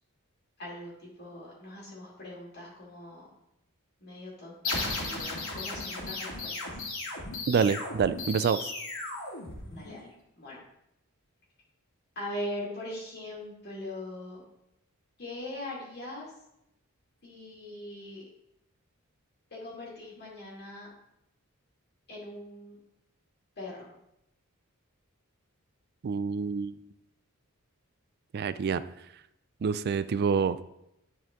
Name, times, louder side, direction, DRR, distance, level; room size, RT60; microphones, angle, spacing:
voice 1, 0.6-3.3 4.0-6.9 9.6-10.1 10.4-10.6 12.2-14.4 15.2-16.3 17.2-18.2 19.5-20.9 22.1-22.8 23.6-23.9, left 1 dB, 50° left, -5 dB, 2.2 m, -41 dB
sound 1, 4.6-10.1, left 2 dB, 75° left, 2.2 m, -36 dB
voice 2, 7.5-8.6 26.0-26.8 28.3-28.8 29.6-30.6, right 6 dB, 50° right, 14 dB, 0.4 m, -27 dB
10.5 x 4.5 x 3.7 m, 0.82 s
head